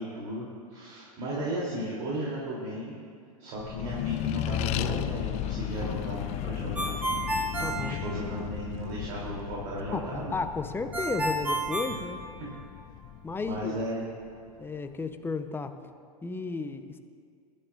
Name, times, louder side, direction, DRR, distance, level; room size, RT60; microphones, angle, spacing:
voice 1, 0.0-3.0 3.4-7.3 7.6-10.3 11.9-12.0 12.5-12.6 13.4-14.1 14.5-14.6, equal, 60° right, -5 dB, 3.2 m, -35 dB
Accelerating revving vroom, 3.6-14.5, left 13 dB, 35° left, 0.5 m, -35 dB
Ringtone, 6.7-8.7 10.9-12.8, right 1 dB, 10° right, 1.6 m, -31 dB
voice 2, 7.6-8.0 9.9-12.2 13.2-13.8 14.6-15.8 16.2-17.0, left 4 dB, 10° left, 8 dB, 0.8 m, -33 dB
22.0 x 12.5 x 2.5 m, 2.1 s
hypercardioid pair, 95°, 20 cm